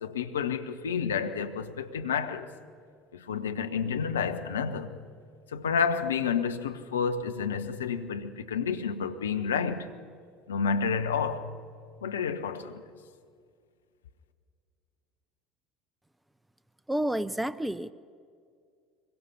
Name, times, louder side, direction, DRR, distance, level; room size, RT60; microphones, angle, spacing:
voice 1, 0.0-2.5 3.1-5.0 5.5-9.9 10.5-11.6 12.0-12.8, left 6 dB, 75° left, 0.9 m, -30 dB
voice 2, 16.9-17.9, right 1 dB, 5° right, 0.6 m, -29 dB
25.0 x 22.0 x 5.7 m
figure-of-eight pair, 65°, 0 cm